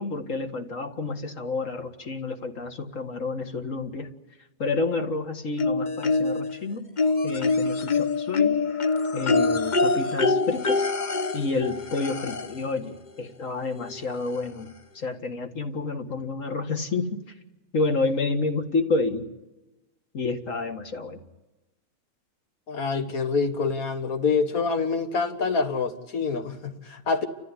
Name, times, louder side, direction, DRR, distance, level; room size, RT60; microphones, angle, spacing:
voice 1, 0.0-4.1 4.6-6.9 7.2-8.6 9.1-10.9 11.3-17.2 17.7-19.3 20.1-21.2, left 3 dB, 65° left, 5 dB, 2.1 m, -29 dB
sound 1, 5.6-6.5 7.0-12.7 13.9-14.0 14.3-14.4, left 3 dB, 40° left, 1.0 m, -25 dB
voice 2, 22.7-27.3, left 4 dB, 90° left, 7 dB, 2.1 m, -26 dB
30.0 x 14.5 x 9.8 m, 1.1 s
omnidirectional pair, 1.5 m